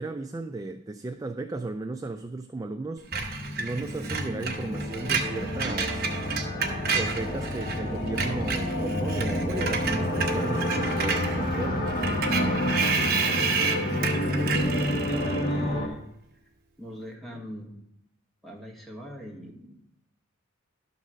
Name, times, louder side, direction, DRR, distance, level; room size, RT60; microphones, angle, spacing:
voice 1, 0.0-3.2 3.6-6.1 6.9-12.0, right 2 dB, 15° right, 6 dB, 0.3 m, -35 dB
sound 1, 3.1-15.9, left 1 dB, 45° left, 1.6 m, -29 dB
Screech, 3.1-7.8 8.1-15.5, right 5 dB, 45° right, 1.1 m, -31 dB
voice 2, 14.1-16.0 16.8-17.8 18.4-19.8, equal, ahead, -1 dB, 1.5 m, -40 dB
11.5 x 4.0 x 6.2 m, 0.79 s
head